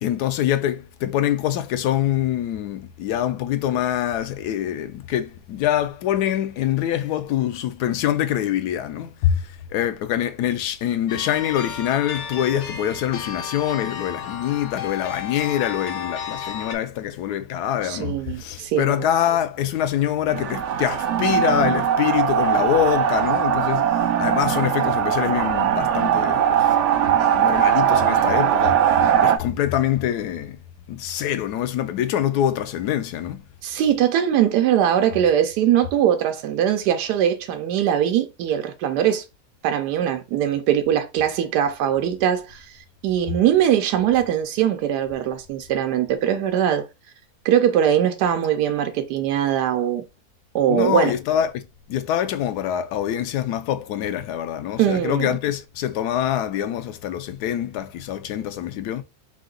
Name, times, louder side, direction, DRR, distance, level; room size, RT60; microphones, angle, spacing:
voice 1, 0.0-23.8 24.2-27.0 27.3-30.6 30.9-33.4 50.7-59.0, left 11 dB, 80° left, 1.1 m, -25 dB
sound 1, 11.1-16.8, left 7 dB, 60° left, 0.8 m, -33 dB
voice 2, 17.8-19.1 33.6-39.2 39.6-42.7 43.0-46.9 47.4-50.0 50.5-51.1 54.8-55.4, right 10 dB, 85° right, 1.2 m, -21 dB
sound 2, 20.3-29.4, right 9 dB, 70° right, 0.7 m, -20 dB
3.8 x 2.8 x 3.7 m
omnidirectional pair, 1.7 m